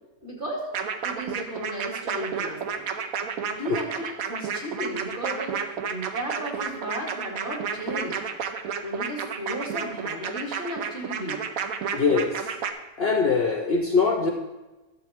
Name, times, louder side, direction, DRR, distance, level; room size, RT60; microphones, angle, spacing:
voice 1, 0.2-0.7 1.0-2.9 3.6-5.6 5.9-8.1 8.8-11.4, right 1 dB, 35° right, -2 dB, 2.6 m, -34 dB
sound 1, 0.7-12.7, right 6 dB, 70° right, 1.1 m, -31 dB
voice 2, 11.9-12.5 13.0-14.3, left 4 dB, 50° left, 3 dB, 0.8 m, -22 dB
12.0 x 7.1 x 3.5 m, 1.1 s
omnidirectional pair, 1.6 m